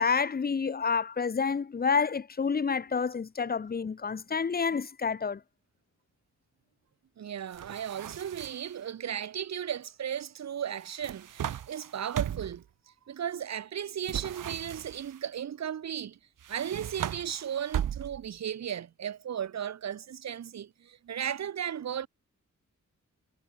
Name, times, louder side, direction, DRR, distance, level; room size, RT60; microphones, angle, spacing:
voice 1, 0.0-5.4, left 5 dB, 30° left, 0.6 m, -29 dB
voice 2, 7.2-12.6 13.1-16.2 16.5-22.1, right 9 dB, 60° right, 0.7 m, -35 dB
sound 1, 7.5-8.8 10.8-12.6 14.0-15.2 16.4-18.4, right 10 dB, 85° right, 0.9 m, -37 dB
wide cardioid pair, 105°, 31 cm